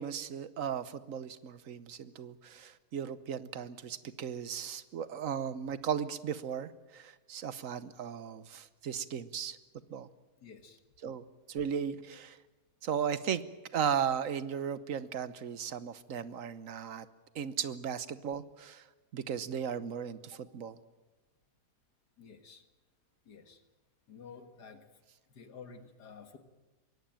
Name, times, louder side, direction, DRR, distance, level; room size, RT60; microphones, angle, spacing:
voice 1, 0.0-9.6 9.9-10.1 11.0-12.4 12.8-13.4 13.7-17.1 17.3-18.8 19.1-20.8, right 8 dB, 60° right, 14 dB, 1.3 m, -36 dB
voice 2, 10.4-10.8 20.3-20.4 22.2-22.6 23.3-23.6 24.1-24.9 25.3-26.4, left 5 dB, 80° left, 7 dB, 2.2 m, -51 dB
22.5 x 17.5 x 9.0 m, 1.2 s
omnidirectional pair, 1.7 m